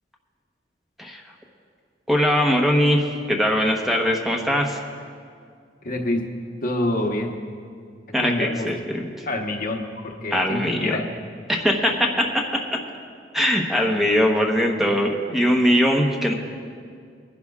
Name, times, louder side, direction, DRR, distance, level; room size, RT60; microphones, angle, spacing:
voice 1, 2.1-4.8 8.1-8.8 9.2-9.3 10.3-10.9 11.5-12.4 13.3-16.3, equal, ahead, 0 dB, 1.0 m, -21 dB
voice 2, 5.8-6.3 6.6-7.4 8.2-8.7 9.3-11.0, left 1 dB, 50° left, 2 dB, 1.1 m, -26 dB
24.0 x 11.0 x 2.4 m, 2.1 s
head